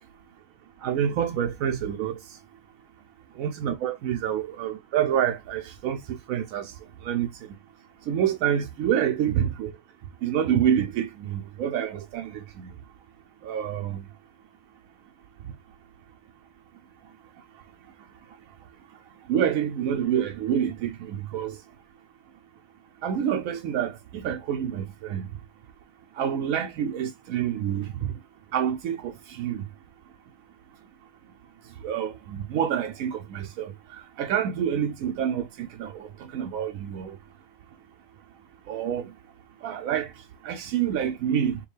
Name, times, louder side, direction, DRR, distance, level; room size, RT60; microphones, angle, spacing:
voice 1, 0.8-2.2 3.4-6.7 7.0-7.3 8.1-9.7 10.2-12.7 13.4-14.0 19.3-21.6 23.0-25.3 26.1-28.1 28.5-29.6 31.8-37.2 38.7-39.1 39.6-40.1 40.4-41.6, right 9 dB, 90° right, 1.0 m, -27 dB
4.7 x 2.3 x 3.2 m
omnidirectional pair, 1.4 m